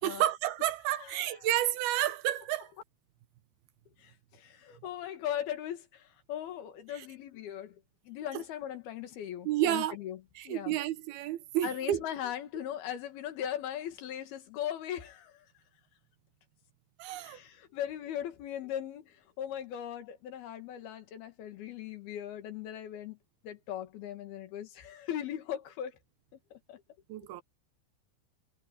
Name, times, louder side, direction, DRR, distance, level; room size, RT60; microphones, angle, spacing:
voice 1, 0.0-2.7 6.9-7.1 8.3-8.4 9.4-10.0 10.4-12.0 17.0-17.4 27.1-27.4, right 13 dB, 80° right, 3.0 m, -31 dB
voice 2, 4.0-6.0 6.3-7.7 8.1-10.2 10.5-10.8 11.6-15.3 17.2-19.1 19.4-23.2 23.4-25.9 26.5-26.8, left 10 dB, 80° left, 3.7 m, -38 dB
omnidirectional pair, 4.4 m